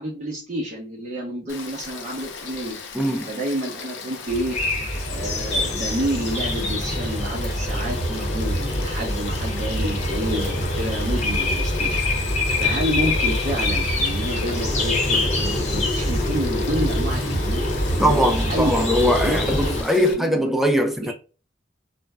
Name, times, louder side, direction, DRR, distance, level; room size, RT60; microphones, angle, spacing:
voice 1, 0.0-2.8 3.3-4.6 5.1-18.2 18.5-18.9 19.3-20.4 21.0-21.1, right 1 dB, 40° right, 0.6 m, -29 dB
Frog / Stream, 1.5-20.1, left 5 dB, 80° left, 0.5 m, -38 dB
voice 2, 2.9-3.3 18.0-21.1, equal, ahead, 0.3 m, -21 dB
sound 1, 4.3-19.8, left 1 dB, 35° left, 0.8 m, -24 dB
2.5 x 2.1 x 3.2 m
head